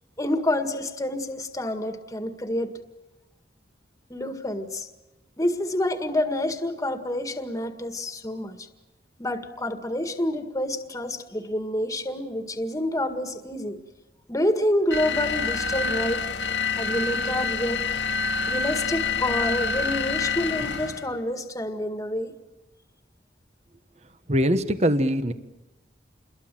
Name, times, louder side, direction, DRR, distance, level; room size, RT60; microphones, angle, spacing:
voice 1, 0.2-2.7 4.1-4.9 5.4-8.7 9.2-13.8 14.3-16.2 16.8-17.8 18.5-22.3, left 1 dB, 20° left, 7 dB, 1.9 m, -28 dB
sound 1, 14.9-21.1, left 5 dB, 85° left, 2.2 m, -27 dB
voice 2, 24.3-25.3, equal, 40° right, 11 dB, 1.3 m, -22 dB
29.0 x 22.0 x 7.7 m, 1.1 s
head